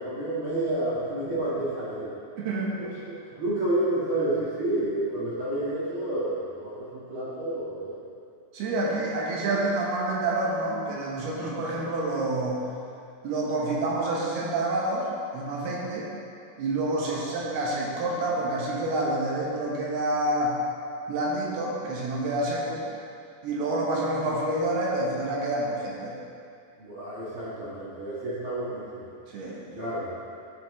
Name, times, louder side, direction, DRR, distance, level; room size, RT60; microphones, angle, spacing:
voice 1, 0.0-2.1 2.8-8.0 16.9-17.3 26.8-29.0 29.7-30.1, right 1 dB, 50° right, -10 dB, 1.6 m, -30 dB
voice 2, 2.4-2.7 8.5-12.6 13.2-15.1 15.3-16.1 16.6-20.6 21.1-22.8 23.4-26.2 29.3-29.7, right 2 dB, 75° right, -4 dB, 3.0 m, -28 dB
13.0 x 5.8 x 3.2 m, 2.4 s
omnidirectional pair, 4.9 m